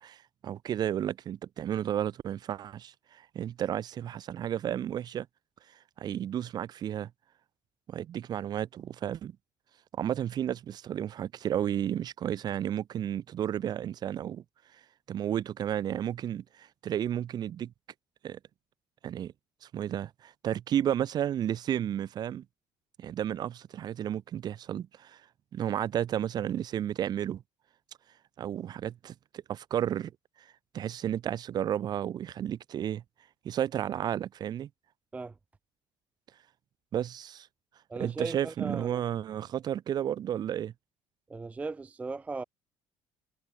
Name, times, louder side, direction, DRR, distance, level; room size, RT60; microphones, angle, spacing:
voice 1, 0.0-5.3 6.0-7.1 7.9-9.4 10.0-14.4 15.1-17.7 18.2-18.4 19.0-19.3 19.6-22.4 23.0-25.2 25.5-27.4 28.4-30.1 30.4-30.5 30.7-33.0 33.4-34.7 36.9-37.5 37.9-40.7, right 10 dB, 40° right, 1.2 m, -32 dB
voice 2, 37.9-39.0 41.3-42.4, right 3 dB, 15° right, 0.4 m, -37 dB
cardioid pair, 140°, 10 cm